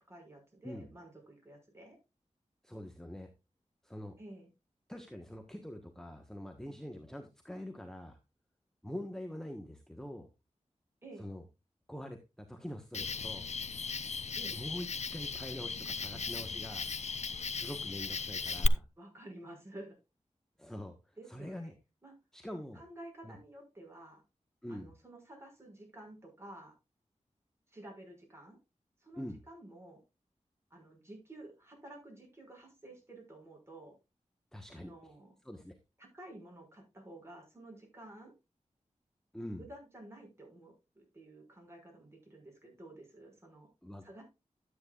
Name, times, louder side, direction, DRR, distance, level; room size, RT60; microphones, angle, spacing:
voice 1, 0.0-2.0 4.2-4.5 11.0-11.3 14.3-14.6 19.0-20.0 21.2-21.7 22.0-22.1 22.7-24.2 24.7-26.7 27.7-28.6 29.0-30.0 30.7-34.0 34.7-35.3 36.0-38.3 39.6-43.7 44.0-44.2, right 1 dB, 20° right, 1 dB, 5.9 m, -52 dB
voice 2, 2.6-3.3 3.8-4.2 4.9-8.2 8.8-10.3 11.2-11.4 11.9-13.5 14.5-16.9 17.4-18.8 20.6-21.7 22.3-22.8 23.2-23.4 24.6-24.9 29.2-29.4 34.5-35.1 35.4-35.7 39.3-39.6 43.8-44.0, equal, 5° left, 5 dB, 1.3 m, -44 dB
Cricket, 12.9-18.7, left 4 dB, 60° left, 0.6 m, -36 dB
12.5 x 8.9 x 2.5 m, 0.26 s
wide cardioid pair, 80°, 13 cm